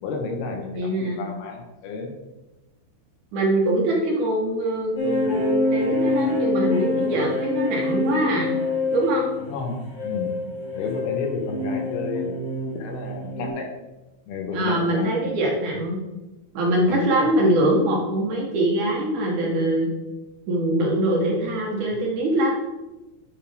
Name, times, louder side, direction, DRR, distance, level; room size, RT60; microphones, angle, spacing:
voice 1, 0.0-2.1 9.5-10.3 10.7-13.7 14.3-15.2 16.9-17.3, left 4 dB, 80° left, 2 dB, 2.9 m, -32 dB
voice 2, 0.7-1.2 3.3-8.5 8.9-9.3 14.5-16.0 16.5-19.9 20.5-22.6, right 1 dB, 65° right, -3 dB, 2.5 m, -23 dB
sound 1, 5.0-13.5, left 2 dB, 45° left, 2.7 m, -26 dB
9.9 x 5.0 x 3.4 m, 1.1 s
omnidirectional pair, 4.4 m